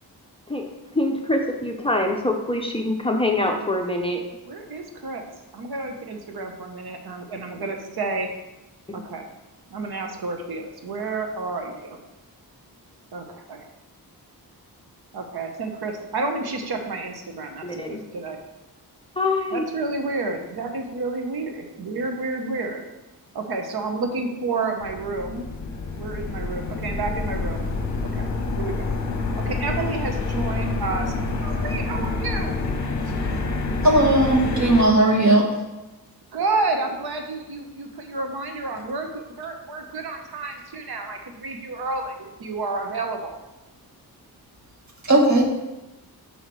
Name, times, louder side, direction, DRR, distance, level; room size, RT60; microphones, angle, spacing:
voice 1, 1.0-4.3 8.9-9.0 17.6-18.0 19.2-19.6, left 2 dB, 15° left, 1 dB, 0.6 m, -24 dB
voice 2, 4.4-5.3 5.5-8.3 8.9-9.3 9.7-12.0 13.1-13.6 15.1-18.4 19.5-22.8 23.3-25.5 25.9-27.7 28.1-28.3 28.6-28.9 29.4-31.1 31.4-32.5 36.3-43.4, right 3 dB, 70° right, 4 dB, 0.9 m, -30 dB
sound 1, 24.8-34.8, left 3 dB, 45° left, 0.8 m, -27 dB
voice 3, 33.8-35.5 45.0-45.4, right 1 dB, 45° right, 0 dB, 1.4 m, -17 dB
5.9 x 5.5 x 4.6 m, 1.0 s
wide cardioid pair, 150°, 39 cm